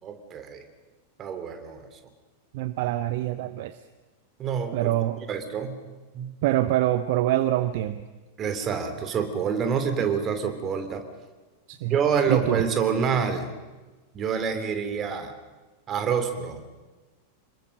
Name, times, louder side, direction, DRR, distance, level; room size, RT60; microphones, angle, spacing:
voice 1, 0.0-0.6 1.2-1.9 4.4-4.9 5.3-5.8 6.1-6.4 8.4-11.1 11.8-13.5 14.1-15.3 15.9-16.6, right 6 dB, 30° right, 7 dB, 3.2 m, -27 dB
voice 2, 2.5-3.7 4.7-5.2 6.4-8.0 11.7-11.9 12.3-12.6, right 14 dB, 50° right, 13 dB, 0.8 m, -25 dB
26.5 x 21.5 x 6.7 m, 1.2 s
figure-of-eight pair, 90°, 0 cm